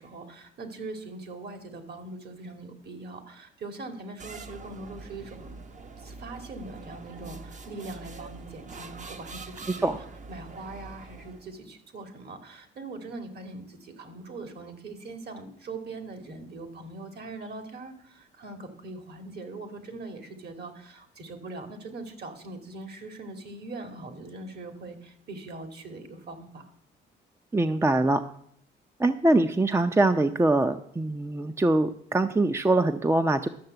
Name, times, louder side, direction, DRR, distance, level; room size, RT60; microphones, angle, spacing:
voice 1, 0.0-5.5 6.0-9.9 10.3-26.7, right 3 dB, 55° right, 6 dB, 2.5 m, -41 dB
sound 1, 4.2-11.6, right 3 dB, 40° right, 1.1 m, -44 dB
voice 2, 27.5-28.3 29.0-33.5, right 2 dB, 15° right, 9 dB, 0.6 m, -23 dB
12.0 x 6.6 x 7.9 m, 0.65 s
cardioid pair, 90°, 20 cm